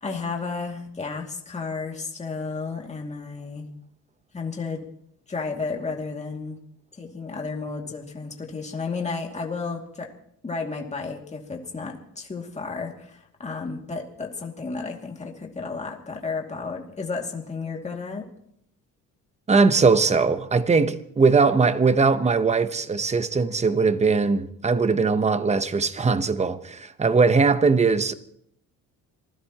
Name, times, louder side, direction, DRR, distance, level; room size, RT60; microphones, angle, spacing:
voice 1, 0.0-3.7 4.3-4.9 5.3-6.6 6.9-10.1 10.4-18.2, left 4 dB, 20° left, 2.4 m, -32 dB
voice 2, 19.5-28.1, right 4 dB, 20° right, 0.9 m, -20 dB
26.0 x 16.0 x 3.0 m
cardioid pair, 120°, 33 cm